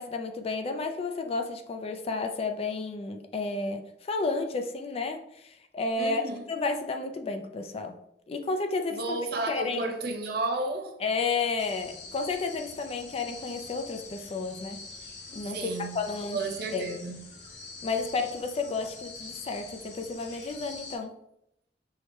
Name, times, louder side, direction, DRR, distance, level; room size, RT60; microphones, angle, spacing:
voice 1, 0.0-8.0 8.3-9.2 9.5-9.9 11.0-14.8 15.3-16.9 17.8-21.2, left 3 dB, 35° left, 0.3 m, -32 dB
voice 2, 6.0-6.4 8.9-11.0 15.5-16.0 16.3-17.2, right 2 dB, 60° right, 0.6 m, -32 dB
sound 1, 11.6-21.0, left 3 dB, 80° left, 0.8 m, -45 dB
4.7 x 2.1 x 2.9 m
head